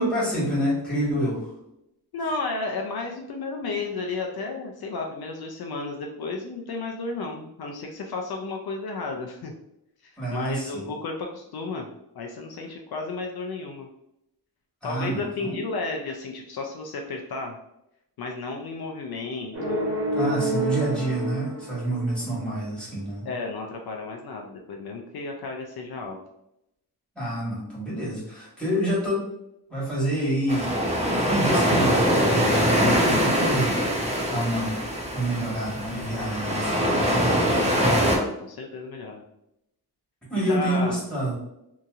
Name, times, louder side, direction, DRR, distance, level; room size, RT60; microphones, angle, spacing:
voice 1, 0.0-1.5 10.2-10.9 14.8-15.6 20.1-23.2 27.1-29.3 29.7-30.7 31.1-34.8 35.1-37.2 40.3-41.3, right 1 dB, ahead, -8 dB, 1.5 m, -28 dB
voice 2, 2.1-9.5 10.0-11.9 12.1-13.9 14.8-17.6 18.2-20.0 20.3-20.8 23.3-26.2 37.6-39.2 40.5-41.0, left 3 dB, 65° left, 1 dB, 0.5 m, -33 dB
sound 1, 19.5-22.4, right 1 dB, 45° right, 1.3 m, -28 dB
sound 2, 30.5-38.2, equal, 15° right, 0.6 m, -23 dB
2.8 x 2.7 x 2.4 m, 0.83 s
wide cardioid pair, 125°, 39 cm